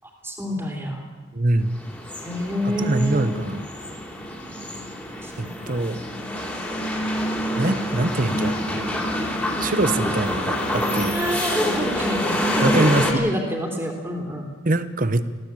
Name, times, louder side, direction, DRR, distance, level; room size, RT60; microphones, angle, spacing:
voice 1, 0.0-1.0 2.2-3.4 5.2-5.5 11.1-14.5, equal, 10° right, -1 dB, 3.0 m, -28 dB
voice 2, 1.3-1.8 2.8-3.6 5.4-6.0 7.6-8.8 9.6-11.2 12.6-13.2 14.6-15.2, right 2 dB, 45° right, 13 dB, 1.0 m, -23 dB
sound 1, 1.7-13.1, equal, 10° left, 3.2 m, -27 dB
20.5 x 16.0 x 8.9 m, 1.4 s
head